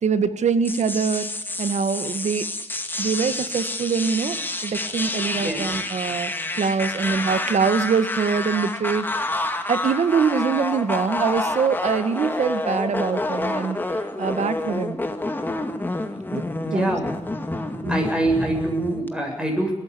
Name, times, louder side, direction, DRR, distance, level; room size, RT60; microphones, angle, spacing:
voice 1, 0.0-1.3 1.6-2.5 3.0-9.1 9.7-13.8 14.2-15.0 16.3-16.4 16.7-16.9 17.8-17.9, right 6 dB, 85° right, 11 dB, 1.9 m, -24 dB
sound 1, 0.6-19.1, left 2 dB, 15° left, 2.2 m, -28 dB
voice 2, 5.3-5.8 16.6-17.2 17.9-19.7, right 1 dB, 10° right, 1 dB, 7.6 m, -25 dB
30.0 x 14.5 x 8.7 m, 0.80 s
wide cardioid pair, 160°, 12 cm